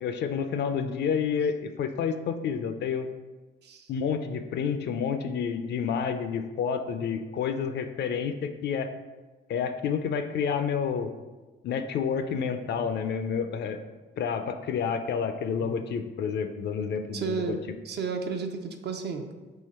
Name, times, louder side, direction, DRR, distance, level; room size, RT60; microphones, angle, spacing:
voice 1, 0.0-3.1 3.9-8.9 9.5-11.1 11.6-13.8 14.2-17.6, left 6 dB, 60° left, 8 dB, 0.4 m, -29 dB
voice 2, 17.1-17.6 17.8-19.2, right 5 dB, 60° right, 5 dB, 0.5 m, -33 dB
3.7 x 2.8 x 4.1 m, 1.2 s
cardioid pair, 90°, 20 cm